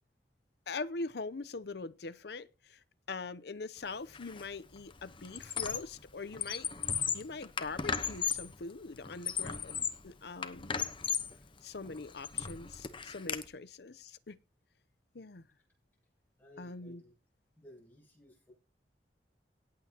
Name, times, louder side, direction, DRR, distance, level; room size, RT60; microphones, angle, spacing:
voice 1, 0.7-2.8 3.1-6.7 7.1-10.8 11.6-14.4 15.1-15.4 16.6-17.0, left 3 dB, 65° left, 0.7 m, -42 dB
Squeak, 4.1-4.4 4.8-6.0 6.3-8.5 9.0-10.1 10.4-11.4 11.9-13.4, left 7 dB, 30° left, 1.0 m, -36 dB
voice 2, 16.4-17.1 17.6-18.5, left 1 dB, 10° left, 7.4 m, -57 dB
18.0 x 8.5 x 2.9 m
head